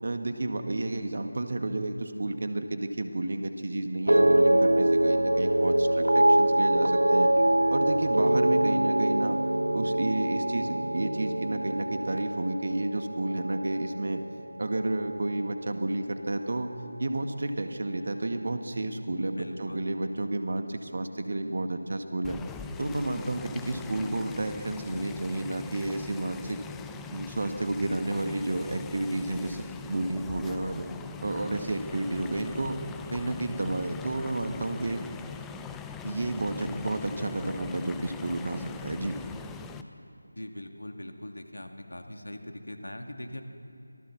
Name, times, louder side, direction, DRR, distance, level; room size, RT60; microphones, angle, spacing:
voice 1, 0.0-7.3 7.7-9.4 9.7-14.2 14.6-16.7 17.0-22.4 22.8-26.6 27.1-30.9 31.2-32.8 33.1-35.1 36.0-39.2, right 2 dB, 50° right, 6 dB, 2.0 m, -31 dB
sound 1, 4.1-14.4 14.7-15.3, right 1 dB, 80° right, 0.4 m, -24 dB
voice 2, 19.4-20.0 40.4-43.4, left 1 dB, 75° left, 4 dB, 2.5 m, -41 dB
sound 2, 22.2-39.8, left 6 dB, 5° left, 0.5 m, -42 dB
26.0 x 18.0 x 7.1 m, 2.6 s
figure-of-eight pair, 165°, 0 cm